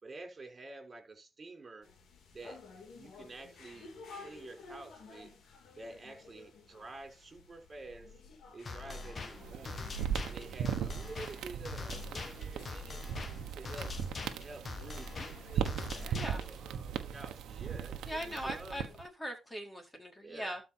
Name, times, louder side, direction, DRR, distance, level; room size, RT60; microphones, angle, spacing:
voice 1, 0.0-1.9 2.3-2.6 2.9-5.3 5.7-8.1 8.5-9.9 10.2-13.0 13.5-18.8 20.2-20.5, right 2 dB, 30° right, 5.1 m, -49 dB
sound 1, 1.8-19.1, left 4 dB, 65° left, 2.8 m, -56 dB
sound 2, 8.7-16.6, left 3 dB, 40° left, 1.8 m, -43 dB
sound 3, 9.3-19.1, right 8 dB, 80° right, 1.3 m, -39 dB
voice 2, 16.1-16.4 18.1-20.6, equal, 15° left, 4.1 m, -40 dB
12.5 x 5.0 x 4.5 m
cardioid pair, 90°, 0 cm